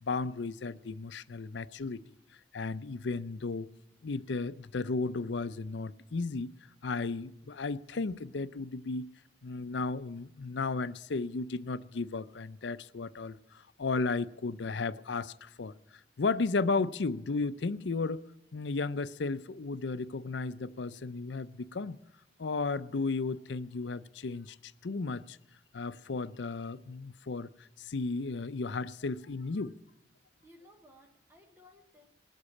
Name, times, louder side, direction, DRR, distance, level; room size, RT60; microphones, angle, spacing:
voice 1, 0.0-2.0 2.5-3.7 4.0-6.5 6.8-9.1 9.4-15.7 16.2-22.0 22.4-25.4 25.7-27.5 27.8-29.7, left 3 dB, 75° left, 0.6 m, -34 dB
voice 2, 30.4-32.1, left 1 dB, 10° right, 1.0 m, -58 dB
19.5 x 8.1 x 8.4 m
head